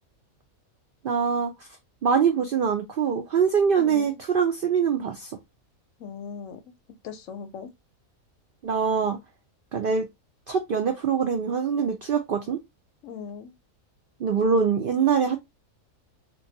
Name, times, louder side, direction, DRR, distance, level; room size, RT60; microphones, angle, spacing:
voice 1, 1.0-1.5 2.0-5.4 8.6-9.2 9.7-10.1 10.5-12.6 14.2-15.4, right 6 dB, 85° right, 0.4 m, -23 dB
voice 2, 3.8-4.2 6.0-6.7 7.0-7.7 13.0-13.5, left 6 dB, 70° left, 0.9 m, -39 dB
2.7 x 2.2 x 2.6 m
omnidirectional pair, 1.5 m